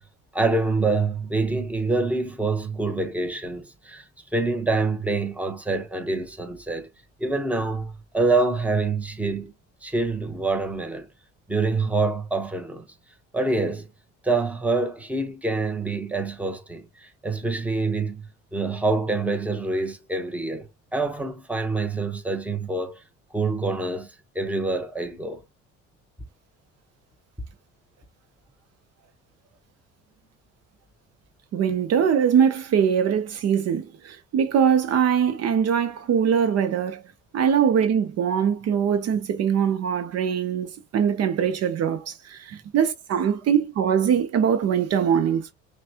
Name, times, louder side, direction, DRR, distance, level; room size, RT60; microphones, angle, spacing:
voice 1, 0.3-4.0 4.3-6.9 7.2-9.5 9.8-11.1 11.5-12.8 13.3-13.9 14.2-23.0 23.3-25.4, right 3 dB, 5° right, 1.0 m, -26 dB
voice 2, 31.5-37.0 37.3-45.5, right 8 dB, 55° right, 0.7 m, -22 dB
5.8 x 2.3 x 2.8 m
supercardioid pair, 85°, 30 cm